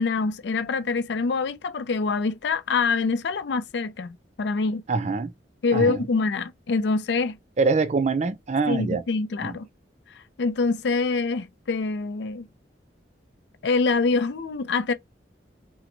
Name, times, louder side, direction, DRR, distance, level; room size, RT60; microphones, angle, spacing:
voice 1, 0.0-4.8 5.6-7.4 8.7-9.7 10.4-12.5 13.6-14.9, left 4 dB, 70° left, 0.4 m, -25 dB
voice 2, 4.9-5.3 5.7-6.0 7.6-9.0 9.4-9.6, right 4 dB, 40° right, 0.4 m, -24 dB
4.3 x 2.1 x 2.6 m
head